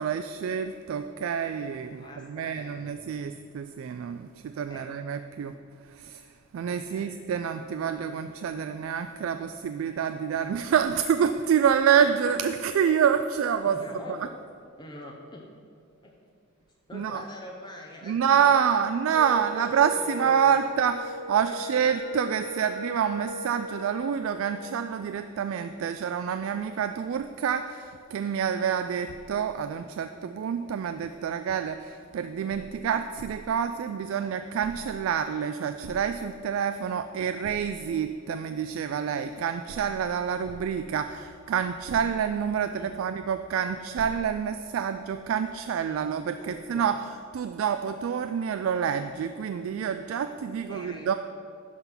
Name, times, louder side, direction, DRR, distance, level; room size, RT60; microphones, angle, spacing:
voice 1, 0.0-5.5 5.9-6.3 6.5-13.8 16.9-17.2 18.1-47.0 47.3-51.1, right 7 dB, 75° right, 9 dB, 0.3 m, -27 dB
voice 2, 1.9-2.9 4.7-4.9 6.9-7.2 13.7-14.3 14.8-15.5 16.0-16.1 16.9-18.7 19.3-20.6 21.5-21.8 28.8-28.9 42.7-43.0 45.8-46.9 50.7-51.1, left 1 dB, 20° left, -1 dB, 0.7 m, -45 dB
Wind instrument woodwind instrument, 19.1-24.7, equal, 15° right, 1.4 m, -39 dB
11.0 x 3.9 x 5.9 m, 2.3 s
head